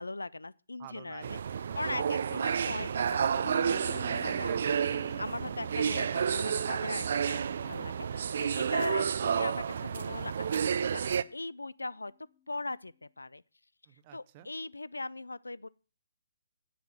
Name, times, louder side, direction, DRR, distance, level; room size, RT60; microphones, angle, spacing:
voice 1, 0.0-1.4 1.8-4.5 5.2-12.1 12.5-13.4 14.1-15.7, left 2 dB, 80° left, 0.4 m, -39 dB
voice 2, 0.8-2.3 4.0-5.3 8.9-9.5 13.9-14.5, right 13 dB, 30° right, 0.9 m, -51 dB
sound 1, 1.2-11.2, right 7 dB, 50° right, 0.5 m, -30 dB
sound 2, 3.4-12.9, left 9 dB, 20° left, 1.1 m, -55 dB
10.0 x 7.8 x 6.1 m
figure-of-eight pair, 135°, 0 cm